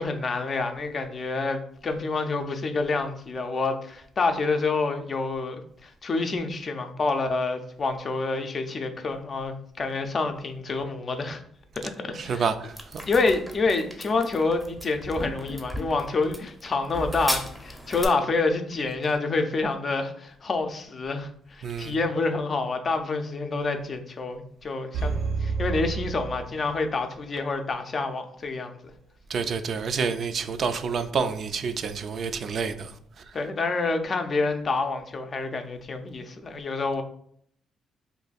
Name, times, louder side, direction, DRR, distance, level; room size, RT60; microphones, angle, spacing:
voice 1, 0.0-11.4 11.8-12.4 13.1-25.1 25.4-28.8 33.3-37.0, left 3 dB, 40° left, 0.4 m, -28 dB
voice 2, 12.2-12.7 21.6-22.0 29.3-32.9, right 5 dB, 55° right, 0.3 m, -28 dB
sound 1, 12.8-18.1, equal, 5° right, 0.6 m, -35 dB
sound 2, 24.9-27.1 27.4-27.5, right 5 dB, 85° right, 0.7 m, -30 dB
2.6 x 2.4 x 4.0 m
cardioid pair, 90°, 0 cm